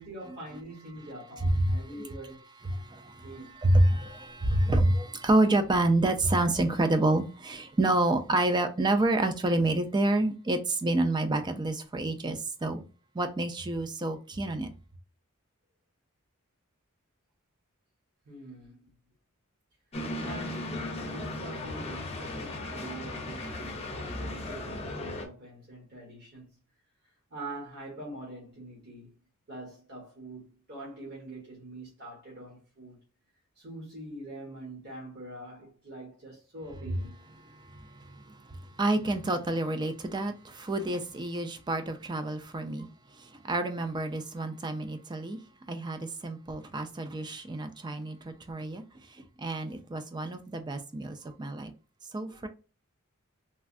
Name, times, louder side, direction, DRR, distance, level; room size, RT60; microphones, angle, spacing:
voice 1, 0.0-2.4 3.2-3.5 18.3-18.9 20.2-26.5 27.3-29.1 29.5-33.0 33.6-37.2 51.2-51.3, right 1 dB, 50° right, 1.3 m, -44 dB
voice 2, 1.4-2.0 2.6-12.8 13.1-14.7 37.4-42.9 43.2-45.4 45.7-48.8 49.1-51.7 52.1-52.5, right 2 dB, 20° right, 0.4 m, -28 dB
sound 1, 19.9-25.3, left 1 dB, 30° left, 0.7 m, -36 dB
3.2 x 2.3 x 2.5 m
head